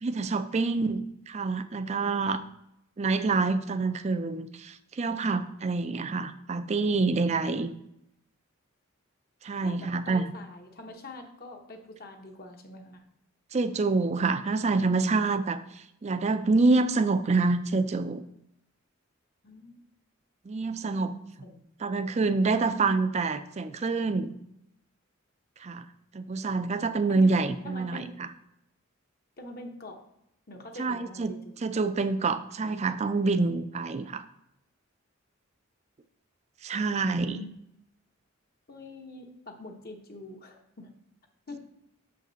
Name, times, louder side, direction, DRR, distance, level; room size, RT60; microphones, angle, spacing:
voice 1, 0.0-2.4 3.0-7.7 9.4-10.3 13.5-18.2 20.5-21.2 21.8-24.3 25.6-25.9 26.1-28.3 30.8-34.2 36.6-37.4, right 3 dB, 30° right, 11 dB, 0.4 m, -27 dB
voice 2, 9.6-13.0 19.4-19.8 21.0-22.1 27.1-27.4 27.6-28.2 29.4-30.0 30.5-31.6 36.9-37.5 38.7-40.9 41.5-41.6, left 1 dB, 45° left, 3 dB, 0.9 m, -45 dB
6.6 x 5.1 x 3.9 m, 0.81 s
head